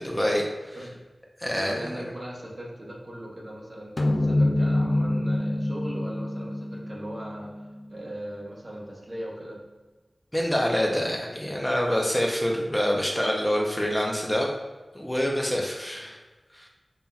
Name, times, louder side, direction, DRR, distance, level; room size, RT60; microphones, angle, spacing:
voice 1, 0.0-0.8 1.4-1.9 10.3-14.5 14.9-16.2 16.5-16.7, equal, 10° left, -1 dB, 0.6 m, -26 dB
voice 2, 1.5-9.6 15.9-16.1, equal, 50° right, -3 dB, 1.0 m, -39 dB
sound 1, 4.0-8.6, left 1 dB, 50° left, 0.4 m, -26 dB
5.4 x 2.8 x 2.3 m, 1.2 s
wide cardioid pair, 60°, 0 cm